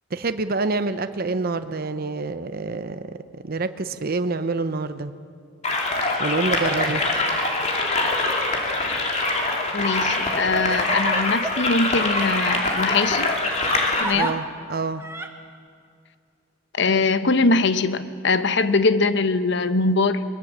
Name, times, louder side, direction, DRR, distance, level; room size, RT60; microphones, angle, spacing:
voice 1, 0.1-5.1 6.2-7.0 14.1-15.0, right 3 dB, 50° right, 10 dB, 0.8 m, -27 dB
sound 1, 5.6-14.0, left 2 dB, 35° left, 2.7 m, -24 dB
Crying sobbing, 8.1-8.4 9.0-9.1 10.1-12.3 13.5-14.3 15.0-15.3, right 2 dB, 15° right, 1.4 m, -33 dB
voice 2, 9.7-13.3 14.0-14.3 16.8-20.2, left 3 dB, 65° left, 11 dB, 1.0 m, -22 dB
23.0 x 21.0 x 7.3 m, 2.2 s
head